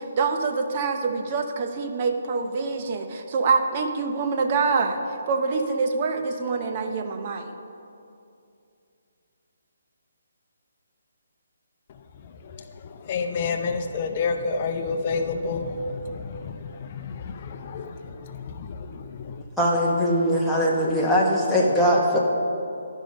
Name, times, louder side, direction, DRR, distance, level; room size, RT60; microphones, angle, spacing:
voice 1, 0.0-5.0 5.3-7.5, right 4 dB, 35° right, 5 dB, 0.7 m, -25 dB
voice 2, 13.0-19.4, left 4 dB, 40° left, 7 dB, 0.6 m, -29 dB
voice 3, 19.6-22.2, equal, ahead, -6 dB, 1.2 m, -21 dB
12.0 x 5.5 x 5.2 m, 2.6 s
hypercardioid pair, 155°, 0 cm